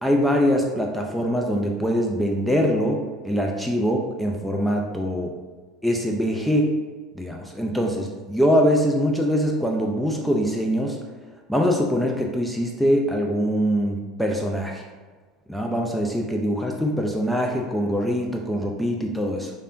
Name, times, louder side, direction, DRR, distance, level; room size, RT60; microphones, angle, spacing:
voice 1, 0.0-5.3 5.8-6.7 7.2-11.0 11.5-14.8 15.5-19.5, equal, ahead, 0 dB, 0.3 m, -23 dB
3.3 x 2.5 x 2.5 m, 1.4 s
figure-of-eight pair, 75°, 3 cm